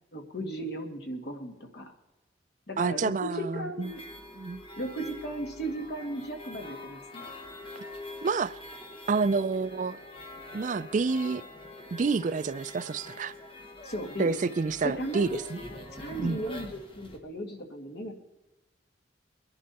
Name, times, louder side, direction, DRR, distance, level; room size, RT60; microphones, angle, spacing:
voice 1, 0.1-1.9 2.7-4.0 4.8-7.3 13.8-14.4 14.8-15.4 16.0-18.1, right 1 dB, 60° left, 2.0 m, -36 dB
voice 2, 2.8-3.9 4.4-4.6 7.8-7.9 8.2-8.6 9.1-10.0 10.5-11.4 11.9-13.3 14.2-15.6 16.2-16.4, right 4 dB, 45° right, 0.4 m, -28 dB
sound 1, 3.8-17.2, left 2 dB, 30° left, 1.5 m, -45 dB
22.5 x 11.0 x 4.1 m
head